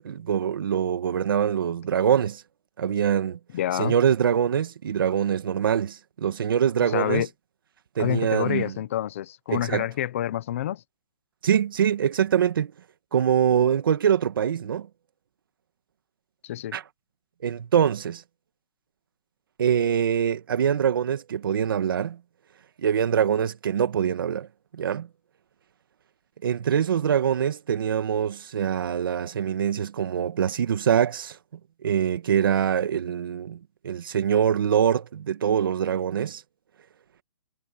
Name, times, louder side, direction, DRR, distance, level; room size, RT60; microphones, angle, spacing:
voice 1, 0.0-2.4 2.8-3.4 3.7-7.2 8.0-8.8 9.5-9.9 11.4-12.7 13.1-14.9 16.7-16.8 17.4-18.2 19.6-22.2 22.8-24.5 24.7-25.1 26.4-31.4 31.8-36.4, right 8 dB, 50° right, 1.9 m, -24 dB
voice 2, 3.5-3.9 6.9-7.3 8.0-10.8 16.4-16.8, left 12 dB, 30° left, 0.9 m, -28 dB
hypercardioid pair, 175°, 15 cm